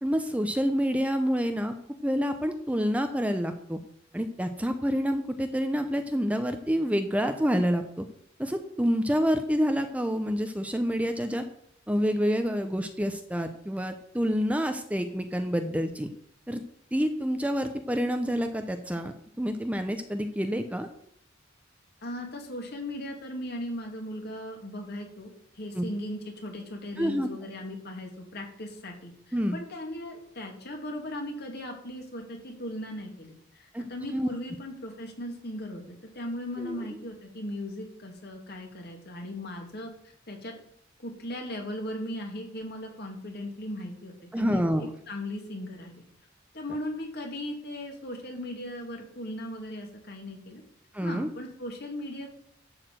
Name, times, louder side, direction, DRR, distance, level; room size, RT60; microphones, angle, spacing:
voice 1, 0.0-1.7 2.0-3.8 4.1-8.0 8.4-11.4 11.9-16.1 16.5-16.6 16.9-20.9 25.7-25.8 27.0-27.3 29.3-29.6 33.7-33.8 34.1-34.3 36.6-36.8 44.3-44.9 50.9-51.3, equal, 5° right, 7 dB, 0.7 m, -28 dB
voice 2, 22.0-40.5 41.0-45.9 46.5-50.6 51.0-52.3, left 1 dB, 55° left, 1 dB, 2.7 m, -38 dB
11.5 x 4.9 x 7.8 m, 0.68 s
head